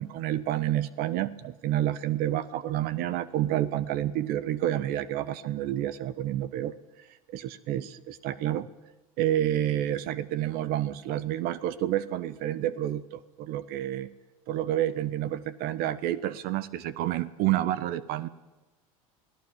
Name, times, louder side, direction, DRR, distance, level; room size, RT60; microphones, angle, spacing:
voice 1, 0.0-6.7 7.3-8.7 9.2-14.1 14.5-18.3, right 12 dB, 55° right, 16 dB, 1.2 m, -29 dB
28.5 x 18.5 x 7.5 m, 1.1 s
hypercardioid pair, 80°, 18 cm